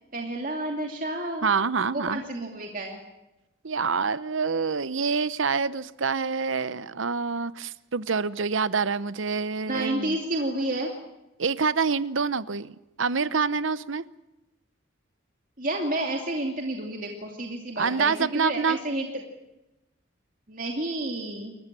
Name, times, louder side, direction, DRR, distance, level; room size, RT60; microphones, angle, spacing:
voice 1, 0.1-1.5 1.9-3.0 9.7-10.9 15.6-19.1 20.5-21.6, right 1 dB, 40° right, 1 dB, 2.7 m, -30 dB
voice 2, 1.4-2.2 3.6-10.2 11.4-14.0 17.8-18.8, right 5 dB, 70° right, 16 dB, 0.9 m, -26 dB
29.0 x 14.5 x 9.0 m, 0.97 s
head